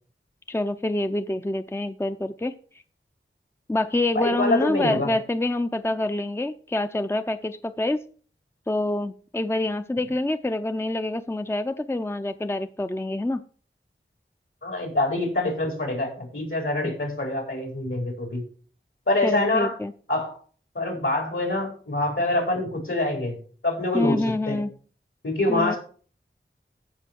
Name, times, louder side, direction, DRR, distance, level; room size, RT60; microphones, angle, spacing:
voice 1, 0.5-2.5 3.7-8.0 8.7-13.4 19.2-19.9 23.9-24.7 25.5-25.7, left 1 dB, 10° left, 10 dB, 0.6 m, -26 dB
voice 2, 4.1-5.1 14.6-18.4 19.1-19.8 20.1-20.4 20.7-23.4 23.6-24.6 25.2-25.8, left 2 dB, 75° left, 1 dB, 4.4 m, -25 dB
14.5 x 5.5 x 4.5 m, 0.43 s
wide cardioid pair, 40°, 21 cm